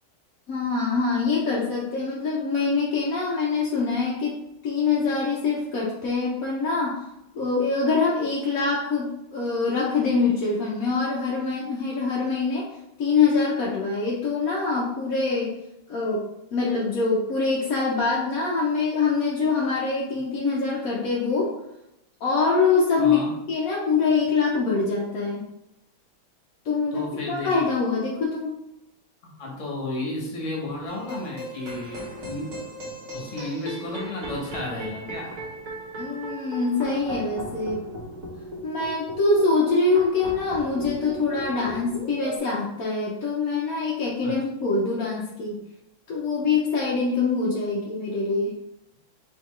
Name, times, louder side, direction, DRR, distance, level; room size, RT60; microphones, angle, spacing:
voice 1, 0.5-4.4 4.6-7.0 7.3-12.7 13.0-15.5 15.9-16.3 16.5-21.5 22.2-23.2 23.5-25.5 26.6-28.6 36.0-37.8 38.6-45.6 46.1-48.5, left 4 dB, 65° left, -4 dB, 0.9 m, -24 dB
voice 2, 23.0-23.3 26.9-27.6 29.2-32.6 33.1-35.4 44.2-44.4, left 2 dB, 45° left, -1 dB, 1.2 m, -33 dB
sound 1, 30.9-42.4, equal, 45° right, 1.1 m, -37 dB
4.1 x 3.8 x 3.1 m, 0.86 s
omnidirectional pair, 2.2 m